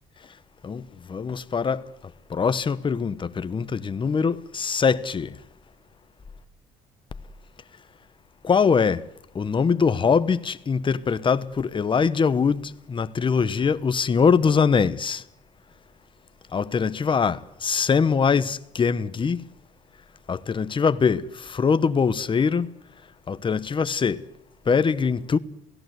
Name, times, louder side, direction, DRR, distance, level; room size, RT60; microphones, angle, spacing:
voice 1, 1.1-1.9 2.3-5.3 8.4-9.0 9.3-15.2 16.5-19.5 20.3-22.7 23.3-24.2 24.7-25.4, left 5 dB, 30° left, 1.1 m, -22 dB
28.5 x 17.5 x 8.1 m
cardioid pair, 110°, 17 cm